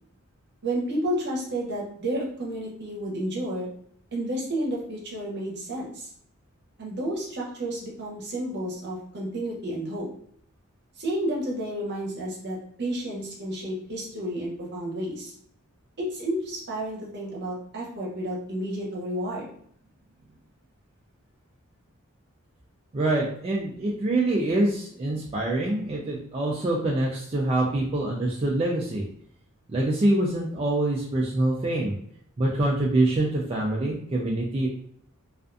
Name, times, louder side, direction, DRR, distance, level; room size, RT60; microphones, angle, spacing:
voice 1, 0.6-3.7 4.1-6.1 6.8-10.1 11.0-15.3 16.0-19.5, right 1 dB, 55° right, -3 dB, 0.8 m, -31 dB
voice 2, 22.9-29.1 29.7-32.0 32.4-34.7, right 2 dB, 25° right, -3 dB, 0.3 m, -25 dB
2.4 x 2.2 x 2.5 m, 0.65 s
head